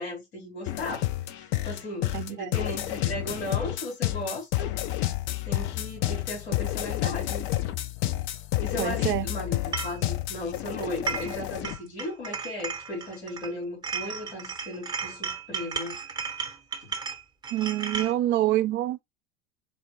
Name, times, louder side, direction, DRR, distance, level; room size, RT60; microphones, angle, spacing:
voice 1, 0.0-4.7 5.4-7.5 8.6-16.0 16.8-16.9, left 1 dB, 70° left, 2.5 m, -36 dB
sound 1, 0.7-11.8, left 15 dB, 35° left, 0.5 m, -30 dB
voice 2, 2.1-2.5 8.8-9.3 17.5-19.0, right 14 dB, 35° right, 0.5 m, -26 dB
sound 2, 9.7-10.0 10.8-11.4 11.6-13.5 13.8-18.1, right 5 dB, 10° right, 0.8 m, -34 dB
4.0 x 2.1 x 3.4 m
hypercardioid pair, 85°, 33 cm